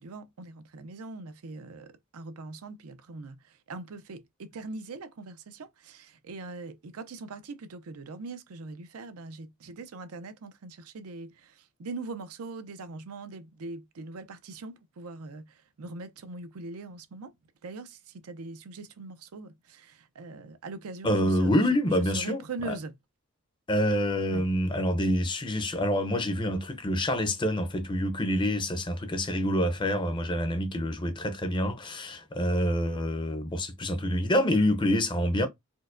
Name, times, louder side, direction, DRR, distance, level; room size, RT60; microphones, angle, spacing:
voice 1, 0.0-17.3 17.6-22.9 24.3-24.5, right 3 dB, 85° right, 0.5 m, -42 dB
voice 2, 21.0-22.7 23.7-35.5, equal, 20° left, 0.5 m, -27 dB
4.4 x 2.1 x 2.5 m
head